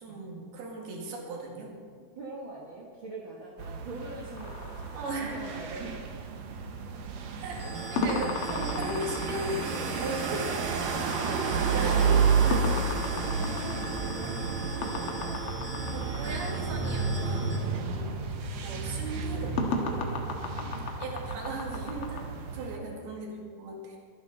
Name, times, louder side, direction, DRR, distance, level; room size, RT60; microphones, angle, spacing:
voice 1, 0.0-1.7 4.9-5.6 7.4-7.5 7.9-10.6 11.7-12.2 12.4-12.6 15.9-17.6 17.9-18.2 18.5-20.2 21.0-22.2 22.5-24.0, right 1 dB, 90° right, -1 dB, 4.1 m, -37 dB
voice 2, 2.2-6.1 8.6-8.9 11.2-15.4 17.1-17.4 20.6-21.0 21.7-21.9 22.7-23.1, right 2 dB, 45° right, -4 dB, 1.7 m, -44 dB
sound 1, 3.6-22.8, right 5 dB, 65° right, 1.8 m, -31 dB
sound 2, 4.4-5.8 8.0-16.6 19.6-22.2, left 3 dB, 55° left, 1.6 m, -35 dB
sound 3, 7.6-17.6, right 3 dB, 25° right, 1.7 m, -38 dB
23.0 x 9.6 x 4.1 m, 2.1 s
omnidirectional pair, 4.3 m